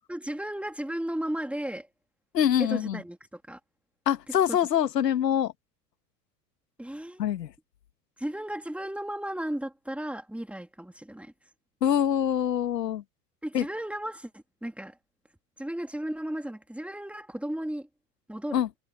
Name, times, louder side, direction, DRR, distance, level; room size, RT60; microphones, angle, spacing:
voice 1, 0.1-1.9 2.6-3.6 4.3-4.6 6.8-7.3 8.2-11.3 13.4-15.0 15.6-17.9 18.3-18.6, right 1 dB, 5° right, 3.0 m, -35 dB
voice 2, 2.3-3.0 4.1-5.5 7.2-7.5 11.8-13.0 13.5-13.6 18.5-18.7, left 10 dB, 85° left, 1.7 m, -25 dB
hypercardioid pair, 90°, 48 cm